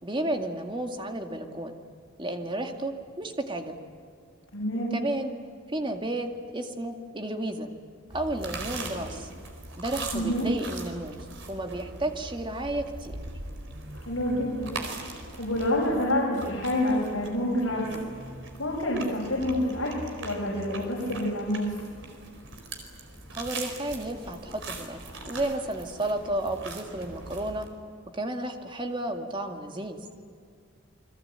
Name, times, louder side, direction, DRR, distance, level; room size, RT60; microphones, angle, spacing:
voice 1, 0.0-1.7 2.2-3.8 4.9-5.3 5.7-6.3 6.5-7.7 8.1-9.3 9.8-11.2 11.5-13.1 23.3-25.0 25.3-27.7 28.1-30.0, right 1 dB, 25° right, 4 dB, 2.1 m, -32 dB
voice 2, 4.5-4.9 10.1-10.5 14.0-14.7 15.4-17.9 18.6-19.9 20.2-21.7, left 1 dB, 75° left, -4 dB, 6.2 m, -27 dB
sound 1, 8.1-27.7, right 2 dB, 65° right, 4.5 m, -41 dB
29.5 x 22.0 x 9.0 m, 2.2 s
head